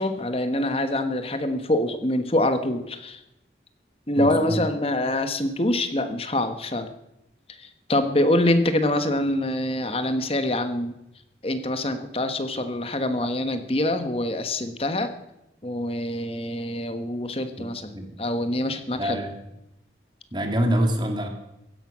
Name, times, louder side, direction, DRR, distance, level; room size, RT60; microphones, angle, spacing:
voice 1, 0.0-3.2 4.1-6.9 7.5-10.9 11.4-15.1 15.6-17.9 18.2-19.2, left 1 dB, 30° left, 9 dB, 1.3 m, -25 dB
voice 2, 4.2-4.6 17.6-17.7 17.9-18.1 19.0-19.3 20.3-21.3, right 1 dB, 25° right, 4 dB, 2.0 m, -25 dB
16.0 x 11.0 x 6.3 m, 0.88 s
head